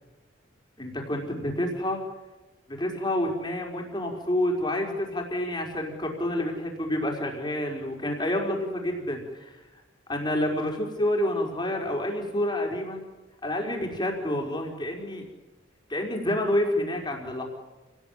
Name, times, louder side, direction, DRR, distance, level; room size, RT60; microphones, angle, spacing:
voice 1, 0.8-2.0 2.7-9.6 10.1-13.0 13.4-15.2 15.9-17.4, left 1 dB, 20° left, 1 dB, 4.7 m, -28 dB
28.5 x 18.5 x 9.2 m, 1.1 s
head